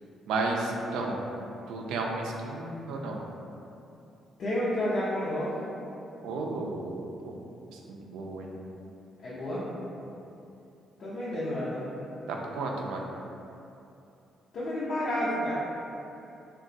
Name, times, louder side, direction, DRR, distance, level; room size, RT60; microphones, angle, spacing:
voice 1, 0.3-1.2 1.7-3.3 6.2-7.4 7.7-8.5 12.3-13.1, right 2 dB, 90° right, 0 dB, 0.3 m, -33 dB
voice 2, 4.4-5.6 9.2-9.7 11.0-11.9 14.5-15.5, left 1 dB, 65° left, -10 dB, 0.6 m, -30 dB
2.4 x 2.2 x 3.8 m, 2.8 s
cardioid pair, 90°, 0 cm